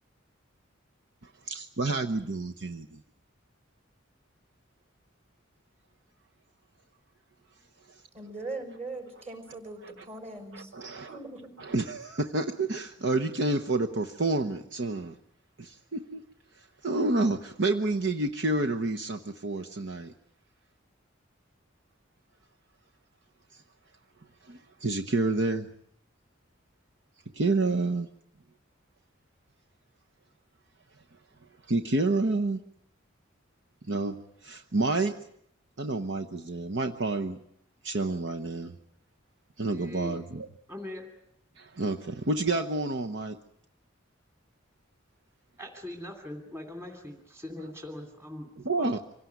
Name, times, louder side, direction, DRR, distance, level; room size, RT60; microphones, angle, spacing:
voice 1, 1.2-3.0 9.1-9.2 9.5-9.6 9.8-10.1 10.5-11.2 11.6-15.2 15.6-16.2 16.6-20.1 23.5-23.6 24.4-25.7 27.3-28.1 31.7-32.6 33.9-35.2 35.8-37.4 37.8-38.7 39.6-40.5 41.6-43.4 48.6-49.0, right 2 dB, 65° right, 5 dB, 1.0 m, -29 dB
voice 2, 8.1-10.7 11.1-11.5, right 2 dB, 35° right, 5 dB, 5.8 m, -40 dB
voice 3, 39.7-40.2 40.7-41.1 45.6-48.5 48.8-49.0, left 1 dB, 15° right, 3 dB, 2.8 m, -41 dB
26.0 x 17.5 x 9.5 m, 0.73 s
head